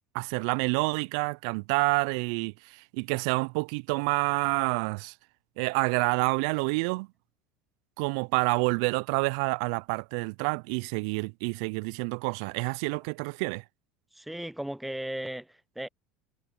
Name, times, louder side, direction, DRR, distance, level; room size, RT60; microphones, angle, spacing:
voice 1, 0.1-5.1 5.6-7.1 8.0-13.6, right 31 dB, 65° right, 0.4 m, -28 dB
voice 2, 14.1-15.9, right 1 dB, 5° right, 0.4 m, -36 dB
hypercardioid pair, 80°, 3 cm